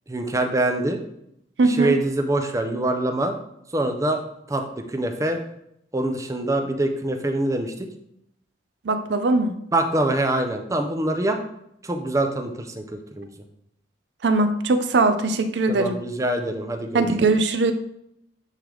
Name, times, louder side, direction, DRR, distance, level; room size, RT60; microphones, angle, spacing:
voice 1, 0.1-1.0 1.7-3.4 3.7-4.2 4.5-5.4 5.9-7.9 9.7-11.4 11.8-13.3 15.7-17.1, right 1 dB, 20° right, 5 dB, 0.6 m, -24 dB
voice 2, 1.6-1.9 8.8-9.5 14.2-16.0 16.9-17.7, right 3 dB, 75° right, 9 dB, 0.5 m, -20 dB
9.1 x 3.4 x 3.8 m, 0.77 s
head